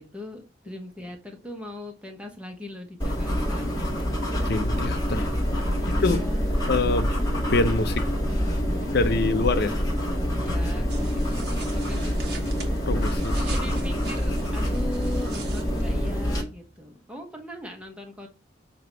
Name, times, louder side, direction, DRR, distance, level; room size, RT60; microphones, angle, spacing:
voice 1, 0.0-3.8 5.7-6.9 8.5-9.5 10.3-12.4 13.3-18.3, left 1 dB, 5° right, 1.4 m, -40 dB
sound 1, 3.0-16.4, equal, 20° left, 1.7 m, -26 dB
voice 2, 4.5-5.3 6.0-6.2 6.7-7.1 7.5-8.1 8.9-9.8 12.8-13.3, left 3 dB, 60° left, 0.7 m, -25 dB
sound 2, 10.9-16.2, right 5 dB, 60° right, 1.4 m, -43 dB
sound 3, 15.8-16.9, right 1 dB, 45° left, 2.0 m, -45 dB
7.2 x 2.9 x 4.7 m
head